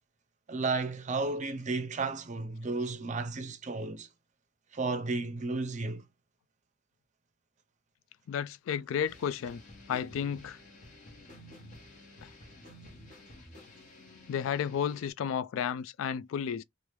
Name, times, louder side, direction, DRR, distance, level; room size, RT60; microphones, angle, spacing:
voice 1, 0.5-4.1 4.7-6.0, right 3 dB, 40° right, 0.6 m, -33 dB
voice 2, 8.3-9.6 9.9-10.6 12.2-12.3 14.3-16.6, left 8 dB, 90° left, 0.3 m, -32 dB
sound 1, 9.1-15.1, left 1 dB, 40° left, 1.3 m, -52 dB
3.1 x 2.5 x 3.0 m
head